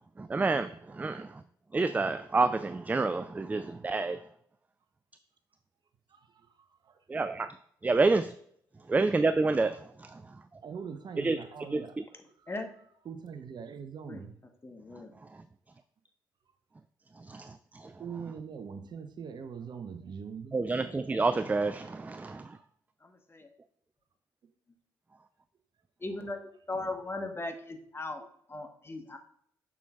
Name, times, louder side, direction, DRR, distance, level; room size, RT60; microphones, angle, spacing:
voice 1, 0.2-1.4 1.7-4.2 7.1-7.5 7.8-8.3 8.9-10.2 11.2-11.4 11.7-11.8 17.2-17.9 20.5-22.6, right 3 dB, 15° right, 13 dB, 0.3 m, -28 dB
voice 2, 6.1-7.0 8.8-8.9 10.1-10.2 10.6-12.0 12.4-12.5 13.0-14.3 18.0-20.6 26.7-26.9, right 6 dB, 45° right, 9 dB, 0.7 m, -42 dB
voice 3, 14.6-15.1 23.0-23.5 26.0-29.2, left 2 dB, 25° left, 5 dB, 1.1 m, -38 dB
6.9 x 6.1 x 2.3 m, 0.67 s
hypercardioid pair, 45°, 10 cm